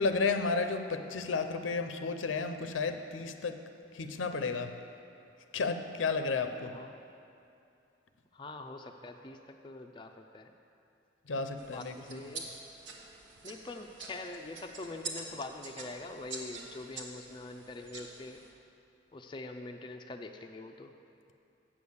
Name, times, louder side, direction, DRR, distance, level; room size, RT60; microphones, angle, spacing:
voice 1, 0.0-3.6 3.9-4.8 5.5-6.7 11.3-12.2, left 4 dB, 90° left, 8 dB, 0.6 m, -32 dB
voice 2, 8.3-10.5 11.7-12.5 13.4-18.4 19.1-20.9, left 2 dB, 25° left, 4 dB, 0.4 m, -44 dB
sound 1, 11.6-18.5, right 3 dB, 75° right, 1.1 m, -46 dB
8.7 x 6.6 x 7.0 m, 2.6 s
head